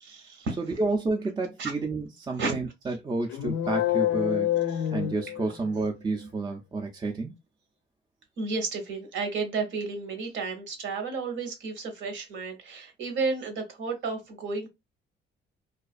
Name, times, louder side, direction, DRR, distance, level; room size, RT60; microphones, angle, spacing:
voice 1, 0.0-0.6 1.6-1.7 2.4-2.6 8.4-14.7, right 4 dB, 75° right, 0.9 m, -32 dB
voice 2, 0.6-7.3, right 3 dB, 20° right, 0.4 m, -30 dB
sound 1, 3.3-5.9, left 12 dB, 80° left, 0.4 m, -27 dB
2.4 x 2.3 x 2.4 m
cardioid pair, 90°, 20 cm